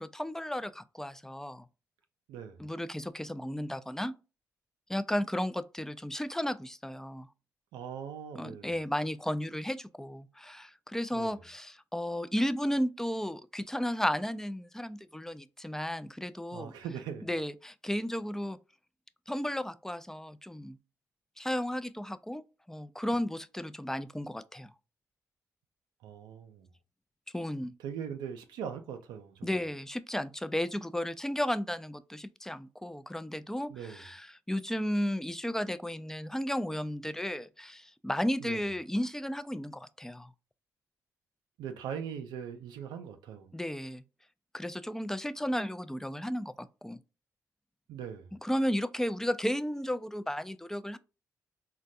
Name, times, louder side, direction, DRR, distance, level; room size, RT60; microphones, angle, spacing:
voice 1, 0.0-1.7 2.6-4.2 4.9-7.3 8.3-16.7 17.3-18.6 19.3-20.8 21.4-24.7 27.3-27.7 29.4-40.3 43.5-44.0 44.5-47.0 48.4-51.0, equal, 5° left, 0.3 m, -34 dB
voice 2, 2.3-2.7 7.7-8.7 11.1-11.4 16.5-17.3 26.0-26.7 27.8-29.5 33.7-34.0 38.4-38.6 41.6-43.5 47.9-48.4, right 8 dB, 80° right, 0.4 m, -41 dB
3.8 x 2.2 x 2.6 m
hypercardioid pair, 45°, 7 cm